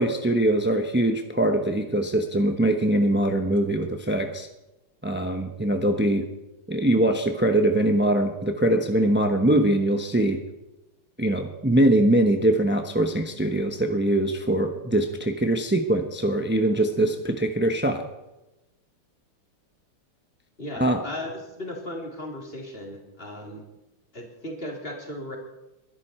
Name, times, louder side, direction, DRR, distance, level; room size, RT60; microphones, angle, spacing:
voice 1, 0.0-4.5 5.0-6.2 6.7-10.4 11.2-18.0 20.8-21.0, right 1 dB, 10° right, 5 dB, 0.5 m, -22 dB
voice 2, 20.6-23.6 24.1-25.4, left 1 dB, 25° left, 0 dB, 3.5 m, -36 dB
22.0 x 11.5 x 4.4 m, 0.97 s
omnidirectional pair, 2.3 m